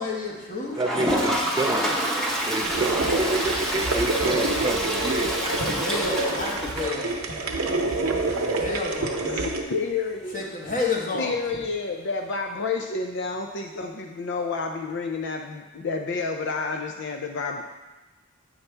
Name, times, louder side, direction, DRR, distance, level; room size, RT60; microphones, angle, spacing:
voice 1, 0.0-0.8 5.3-7.5 8.2-9.3 10.3-11.3, left 3 dB, 40° left, -2 dB, 1.3 m, -31 dB
Toilet flush, 0.7-7.5 7.8-7.9 8.1-8.2 8.4-8.5 11.1-11.2 12.5-12.6, equal, 5° left, 0.8 m, -28 dB
voice 2, 0.8-2.0 2.4-5.4, right 2 dB, 20° right, 5 dB, 0.3 m, -29 dB
sound 1, 2.6-9.6, right 3 dB, 80° right, 0.8 m, -27 dB
voice 3, 9.2-10.4 11.1-17.6, left 4 dB, 60° left, 3 dB, 0.5 m, -30 dB
8.2 x 5.6 x 3.3 m, 1.1 s
head